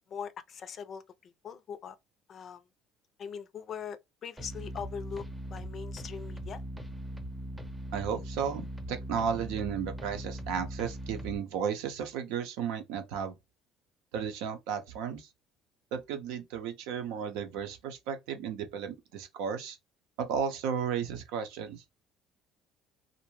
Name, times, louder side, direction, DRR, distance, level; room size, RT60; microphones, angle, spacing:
voice 1, 0.1-2.0 2.3-2.6 3.2-5.2 5.5-6.6, left 7 dB, 45° left, 0.4 m, -41 dB
sound 1, 4.4-11.4, equal, 5° right, 0.6 m, -40 dB
voice 2, 7.9-13.3 14.1-15.3 15.9-19.8 20.2-21.8, right 7 dB, 85° right, 0.7 m, -34 dB
2.6 x 2.1 x 3.0 m
cardioid pair, 100°, 0 cm